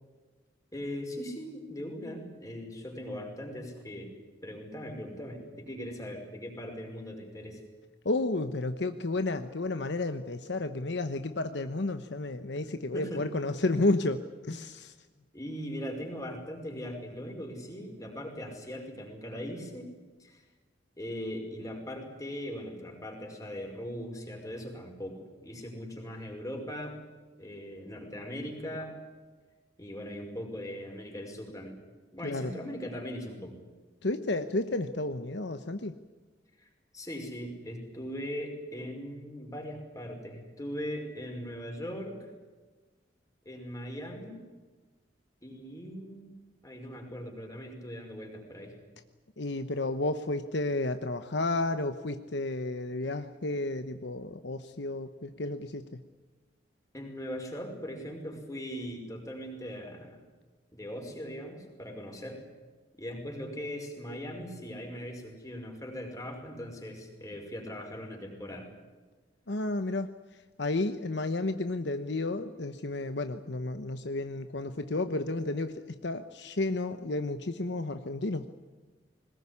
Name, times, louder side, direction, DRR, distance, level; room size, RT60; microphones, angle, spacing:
voice 1, 0.7-4.1 4.4-7.6 12.9-13.2 15.3-19.9 20.2-20.4 21.0-27.0 27.4-28.9 29.8-31.8 32.1-33.5 36.6-42.3 43.5-44.4 45.4-46.3 46.6-48.8 56.9-60.2 60.7-62.4 63.0-68.7, equal, 20° left, 2 dB, 5.5 m, -40 dB
voice 2, 8.0-14.9 32.2-32.5 34.0-35.9 49.4-56.0 69.5-70.1 70.6-78.5, left 2 dB, 65° left, 9 dB, 1.0 m, -32 dB
21.5 x 20.0 x 9.8 m, 1.3 s
head